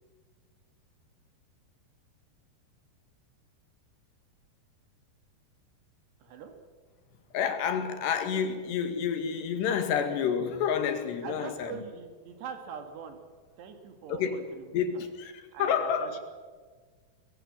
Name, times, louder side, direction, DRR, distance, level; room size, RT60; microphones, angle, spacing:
voice 1, 6.2-6.5 11.2-13.2 13.6-14.8 15.5-16.2, right 6 dB, 80° right, 6 dB, 4.2 m, -42 dB
voice 2, 7.3-11.9 14.1-14.4 14.7-16.2, left 7 dB, 80° left, 7 dB, 4.1 m, -29 dB
23.5 x 21.5 x 7.5 m, 1.5 s
omnidirectional pair, 4.8 m